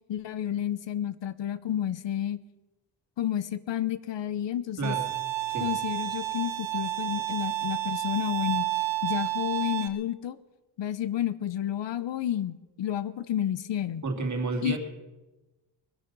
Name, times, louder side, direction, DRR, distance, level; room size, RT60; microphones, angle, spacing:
voice 1, 0.1-2.4 3.2-5.0 5.6-8.7 9.0-10.4 10.8-14.0 14.6-14.8, left 11 dB, 75° left, 16 dB, 0.8 m, -30 dB
voice 2, 4.8-5.1 5.5-5.7 14.0-14.8, right 3 dB, 40° right, 3 dB, 2.4 m, -30 dB
Bowed string instrument, 4.8-9.9, right 16 dB, 80° right, 1.1 m, -30 dB
21.5 x 10.0 x 5.4 m, 1.1 s
wide cardioid pair, 160°, 44 cm